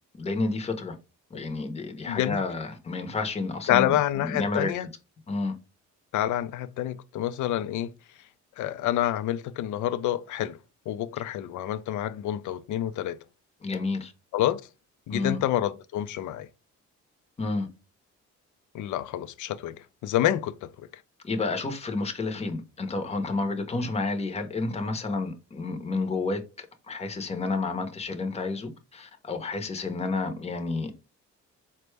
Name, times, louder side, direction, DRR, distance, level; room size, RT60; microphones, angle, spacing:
voice 1, 0.2-1.0 1.3-4.9 5.3-5.5 13.6-14.1 15.1-15.4 17.4-17.7 21.2-30.9, left 3 dB, 20° left, 0.7 m, -30 dB
voice 2, 2.1-2.4 3.7-4.9 6.1-7.9 8.6-10.6 10.9-13.2 14.3-14.7 15.1-16.5 18.7-20.9, left 12 dB, 75° left, 0.5 m, -28 dB
4.0 x 2.2 x 3.2 m
cardioid pair, 90°, 30 cm